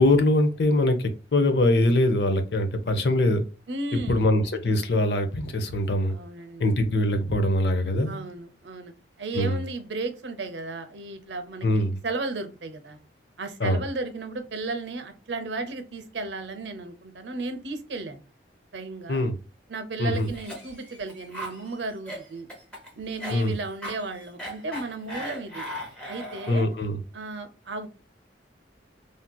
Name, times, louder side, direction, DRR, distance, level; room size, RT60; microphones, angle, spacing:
voice 1, 0.0-3.4 4.1-6.1 6.6-8.2 9.4-9.5 11.6-12.0 13.6-13.8 19.1-19.4 20.0-20.3 23.3-23.5 26.5-27.0, left 1 dB, 65° left, 7 dB, 0.6 m, -23 dB
voice 2, 3.7-4.3 6.1-6.7 8.1-8.9 9.2-13.0 13.4-18.2 18.7-19.2 19.7-22.5 22.9-25.7 26.1-26.7 27.1-27.9, right 3 dB, 80° right, 8 dB, 0.7 m, -34 dB
Cough, 20.1-26.7, equal, 5° left, 1.1 m, -38 dB
3.2 x 2.7 x 2.2 m, 0.32 s
head